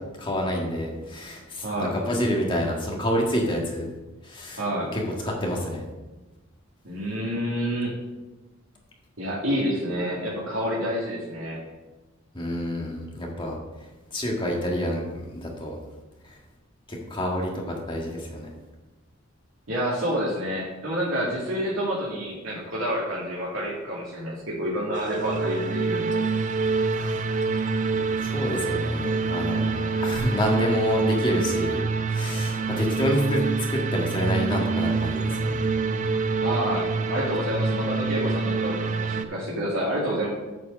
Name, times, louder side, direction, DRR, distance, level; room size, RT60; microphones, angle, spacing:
voice 1, 0.2-3.9 4.2-4.6 4.9-5.8 12.3-13.6 14.1-15.8 16.9-18.5 28.2-31.8 32.1-33.4 33.7-35.6, equal, 25° left, -1 dB, 1.7 m, -28 dB
voice 2, 1.6-2.0 4.5-4.9 6.8-7.9 9.2-11.6 19.7-26.2 36.4-40.3, equal, 85° right, -7 dB, 2.3 m, -28 dB
sound 1, 24.9-39.3, right 4 dB, 35° right, 0.5 m, -26 dB
8.4 x 4.7 x 6.4 m, 1.1 s
head